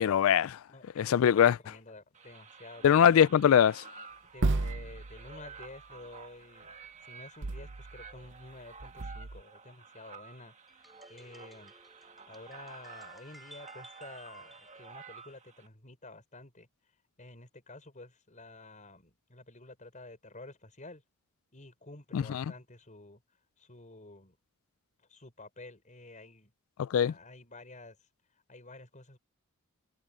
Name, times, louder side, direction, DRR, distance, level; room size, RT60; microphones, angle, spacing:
voice 1, 0.0-0.6 1.0-1.6 2.8-3.8 22.1-22.4 26.8-27.1, left 9 dB, 65° left, 0.3 m, -22 dB
voice 2, 0.7-3.3 4.3-6.7 7.0-11.7 12.0-16.7 17.2-21.0 21.5-23.2 23.6-24.4 25.0-26.5 27.0-28.0 28.5-29.2, left 2 dB, 35° left, 5.3 m, -50 dB
sound 1, 2.1-15.7, right 5 dB, 35° right, 1.7 m, -51 dB
sound 2, 4.4-5.6 7.4-8.3 8.8-9.4, right 3 dB, 55° right, 0.7 m, -34 dB
sound 3, 10.7-15.4, equal, ahead, 4.1 m, -57 dB
head